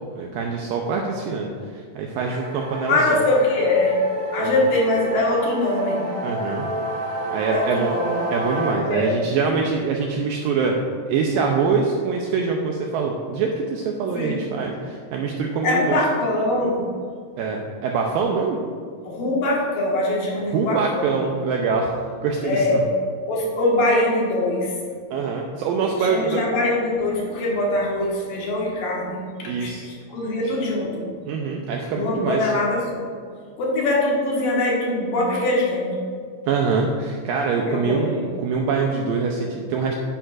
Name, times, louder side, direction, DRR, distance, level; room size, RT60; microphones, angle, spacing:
voice 1, 0.2-3.2 4.4-4.7 6.2-6.7 7.3-7.9 8.3-10.8 11.1-16.0 17.4-18.6 20.5-22.8 25.1-26.4 29.5-29.9 30.4-30.5 31.2-32.5 36.5-39.9, right 5 dB, 85° right, 1 dB, 2.0 m, -24 dB
sound 1, 2.3-8.7, right 1 dB, 65° right, 3.0 m, -30 dB
voice 2, 2.9-4.1 4.3-6.0 7.5-8.2 8.8-9.1 14.2-14.4 15.6-16.9 19.0-21.1 22.4-22.9 23.3-24.8 26.0-31.1 31.9-33.1 33.6-35.9 37.7-38.2, left 2 dB, 65° left, -4 dB, 3.1 m, -22 dB
10.0 x 10.0 x 2.5 m, 2.1 s
omnidirectional pair, 4.7 m